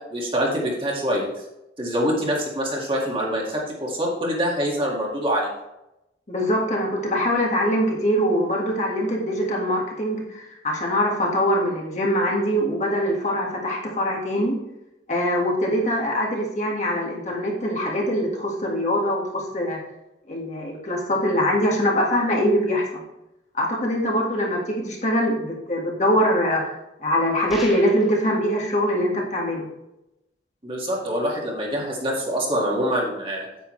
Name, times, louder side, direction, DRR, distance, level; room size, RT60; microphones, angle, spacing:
voice 1, 0.1-1.3 1.8-5.5 30.6-33.5, equal, 30° right, -3 dB, 2.1 m, -25 dB
voice 2, 6.3-14.5 15.1-19.8 20.3-23.0 23.5-26.6 27.0-29.7, equal, 40° left, -2 dB, 1.7 m, -23 dB
sound 1, 27.5-28.2, equal, ahead, 2.3 m, -37 dB
9.3 x 8.4 x 3.2 m, 0.89 s
head